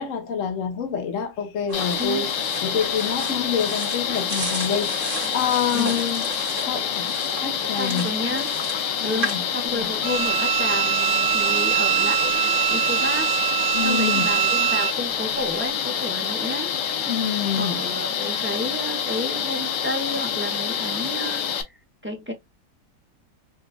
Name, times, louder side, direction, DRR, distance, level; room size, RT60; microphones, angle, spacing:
voice 1, 0.0-2.3 2.6-5.0 5.3-6.3 6.7-7.2 7.4-8.1 9.0-9.4 9.7-9.9 13.7-14.3 17.1-17.8, left 7 dB, 55° left, 1.2 m, -27 dB
sound 1, 1.7-21.6, left 8 dB, 90° left, 1.4 m, -27 dB
sound 2, 1.7-9.4, right 2 dB, 35° right, 1.6 m, -35 dB
voice 2, 2.0-2.3 5.7-6.0 7.8-8.5 8.9-13.3 13.8-16.7 17.5-21.7 22.0-22.3, left 1 dB, 10° right, 0.7 m, -31 dB
Bowed string instrument, 10.0-14.9, right 13 dB, 70° right, 0.6 m, -23 dB
6.0 x 2.4 x 2.2 m
omnidirectional pair, 1.8 m